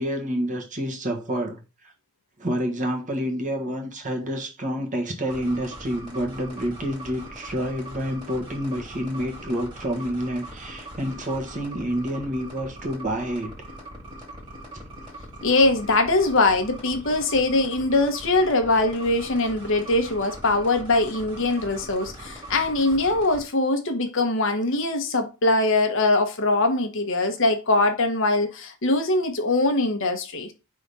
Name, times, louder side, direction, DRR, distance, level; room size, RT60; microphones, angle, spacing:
voice 1, 0.0-1.6 2.4-13.5 14.7-14.8, equal, 35° right, 1.4 m, -28 dB
sound 1, 5.3-23.4, right 1 dB, 20° right, 2.2 m, -41 dB
voice 2, 15.4-30.5, left 2 dB, 60° left, 1.1 m, -22 dB
5.1 x 3.8 x 5.4 m
head